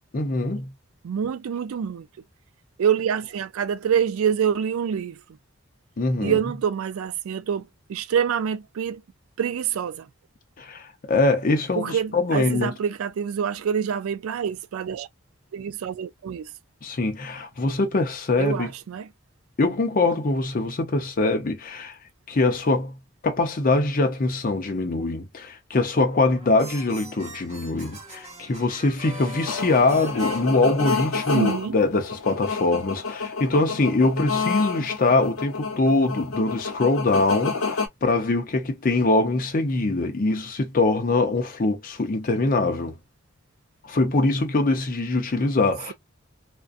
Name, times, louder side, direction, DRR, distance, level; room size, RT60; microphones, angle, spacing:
voice 1, 0.1-0.7 6.0-6.4 10.6-12.7 16.8-18.7 19.6-21.9 22.3-23.0 23.2-43.0 43.8-45.9, left 2 dB, 40° left, 0.6 m, -23 dB
voice 2, 1.0-2.1 2.8-5.2 6.2-9.0 9.4-10.1 11.7-15.1 15.5-16.5 18.4-19.1 31.3-31.8, right 7 dB, 80° right, 0.3 m, -26 dB
sound 1, 26.0-31.3, equal, 30° right, 1.1 m, -41 dB
sound 2, 29.5-37.9, left 4 dB, 85° left, 0.8 m, -29 dB
2.5 x 2.2 x 2.4 m
head